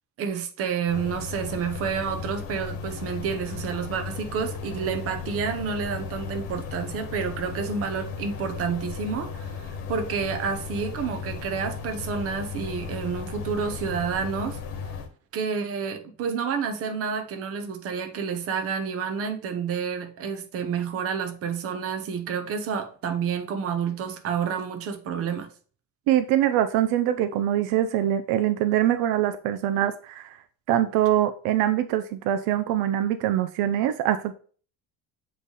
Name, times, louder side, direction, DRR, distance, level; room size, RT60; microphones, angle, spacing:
voice 1, 0.2-14.6 15.3-25.5, right 6 dB, 40° right, 1.0 m, -29 dB
sound 1, 0.9-15.1, left 5 dB, 90° left, 1.3 m, -36 dB
voice 2, 26.1-30.4 30.7-34.3, right 11 dB, 80° right, 0.6 m, -23 dB
7.6 x 3.3 x 4.0 m
cardioid pair, 170°, 36 cm